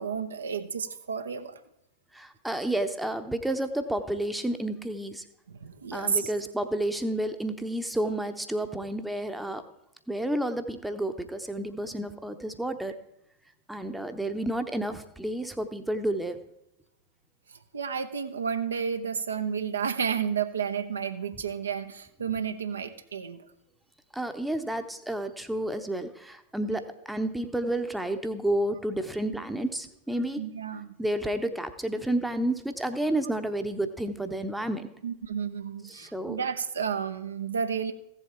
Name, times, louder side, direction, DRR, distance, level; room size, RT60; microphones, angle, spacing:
voice 1, 0.0-1.6 5.5-6.3 17.5-23.5 26.6-26.7 30.4-30.9 35.0-37.9, right 7 dB, 70° right, 8 dB, 0.7 m, -31 dB
voice 2, 2.1-5.2 5.9-9.6 10.1-13.0 13.7-16.4 24.1-30.4 31.0-34.9 35.9-36.4, right 1 dB, 5° right, 8 dB, 0.8 m, -30 dB
15.0 x 7.5 x 4.4 m, 0.83 s
figure-of-eight pair, 90°, 0 cm